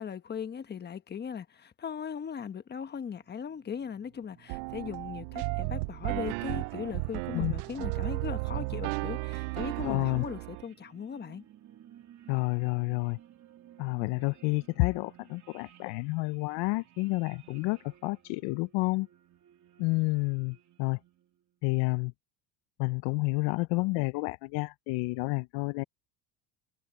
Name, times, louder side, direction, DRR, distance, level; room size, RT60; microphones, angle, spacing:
voice 1, 0.0-11.4, left 7 dB, 20° left, 1.1 m, -39 dB
sound 1, 3.0-21.3, right 10 dB, 35° right, 2.9 m, -55 dB
sound 2, 4.5-10.6, right 28 dB, 60° right, 0.5 m, -34 dB
voice 2, 9.8-10.2 12.3-13.2 13.8-19.1 19.8-21.0 21.6-22.1 22.8-25.8, left 26 dB, 60° left, 0.6 m, -30 dB
supercardioid pair, 130°, 50 cm